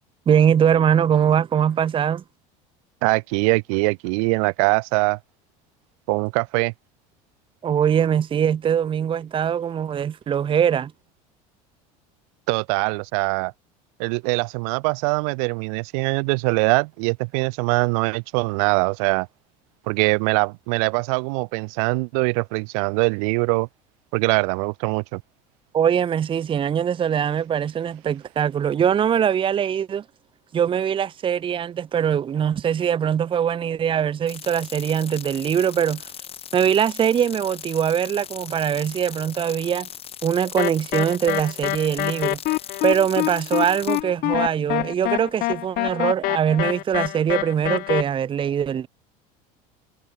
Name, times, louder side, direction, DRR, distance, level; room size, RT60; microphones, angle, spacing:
voice 1, 0.3-2.2 7.6-10.9 25.7-30.0 30.5-36.0 36.5-39.9 40.2-42.4 42.8-48.9, right 8 dB, 30° right, 0.9 m, -22 dB
voice 2, 3.0-5.2 6.1-6.7 12.5-13.5 14.0-19.3 19.9-23.7 24.1-25.2, right 33 dB, 75° right, 1.1 m, -22 dB
sound 1, 34.3-44.0, left 9 dB, 35° left, 1.4 m, -39 dB
sound 2, 40.6-48.0, left 19 dB, 55° left, 0.6 m, -25 dB
supercardioid pair, 110°, 18 cm